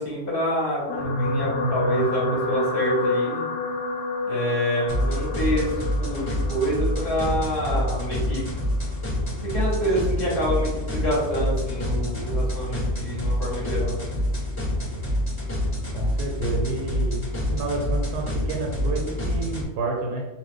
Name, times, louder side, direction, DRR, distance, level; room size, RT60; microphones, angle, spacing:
voice 1, 0.0-3.4 4.3-8.4 9.5-14.0, equal, 40° left, -6 dB, 1.0 m, -27 dB
sound 1, 0.9-9.3 10.1-10.3 10.6-10.7, left 2 dB, 65° left, 0.9 m, -29 dB
sound 2, 4.9-19.6, equal, 15° left, 0.9 m, -27 dB
voice 2, 15.9-20.2, right 3 dB, 85° right, 0 dB, 1.1 m, -29 dB
2.6 x 2.3 x 3.5 m, 1.2 s
omnidirectional pair, 1.7 m